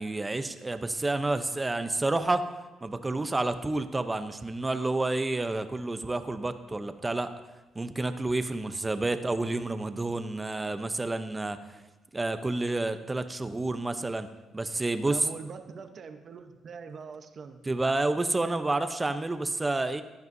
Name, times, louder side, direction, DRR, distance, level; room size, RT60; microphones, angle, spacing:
voice 1, 0.0-2.4 2.8-7.3 7.7-11.6 12.1-14.3 14.5-15.2 17.7-20.0, right 2 dB, 20° right, 10 dB, 0.7 m, -29 dB
voice 2, 15.1-17.6, right 5 dB, 50° right, 7 dB, 0.9 m, -42 dB
15.0 x 10.5 x 2.7 m, 1.1 s
cardioid pair, 90°, 0 cm